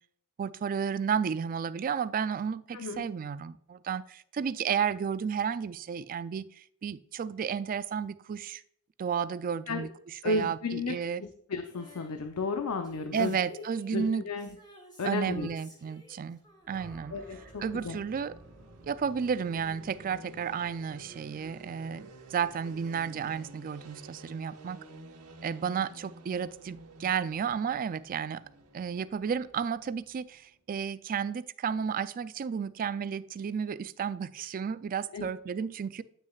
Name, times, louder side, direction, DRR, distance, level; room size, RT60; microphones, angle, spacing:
voice 1, 0.4-6.5 6.8-8.6 9.0-9.9 10.2-11.2 13.1-14.2 15.0-16.4 16.7-17.2 17.6-18.3 18.8-24.8 25.4-28.4 28.7-36.0, right 7 dB, 40° right, 15 dB, 0.3 m, -32 dB
voice 2, 2.7-3.0 9.7-9.9 10.2-13.6 13.9-14.6 15.0-15.5 17.1-18.0 35.1-35.3, left 3 dB, 85° left, 6 dB, 0.6 m, -33 dB
Female singing, 11.7-18.7 19.8-19.9, equal, 20° left, 2.9 m, -55 dB
sound 1, 16.6-30.5, right 2 dB, 90° right, 1.2 m, -51 dB
sound 2, 16.7-24.9, right 1 dB, 5° left, 1.7 m, -57 dB
9.1 x 6.3 x 2.3 m, 0.67 s
head